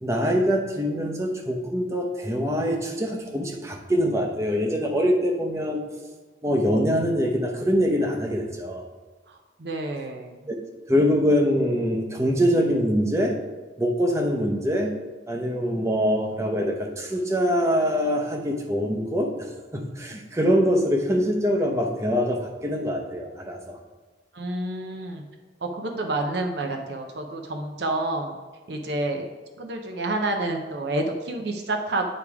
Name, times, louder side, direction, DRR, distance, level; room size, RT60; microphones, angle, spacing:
voice 1, 0.0-5.8 6.4-8.8 10.5-10.6 10.9-13.4 13.8-14.9 15.3-23.8, equal, 15° right, 2 dB, 0.7 m, -24 dB
voice 2, 9.6-10.4 24.3-25.2 25.6-28.4 28.7-29.2 29.6-32.2, right 2 dB, 65° right, 3 dB, 0.7 m, -29 dB
8.8 x 3.4 x 4.8 m, 1.3 s
head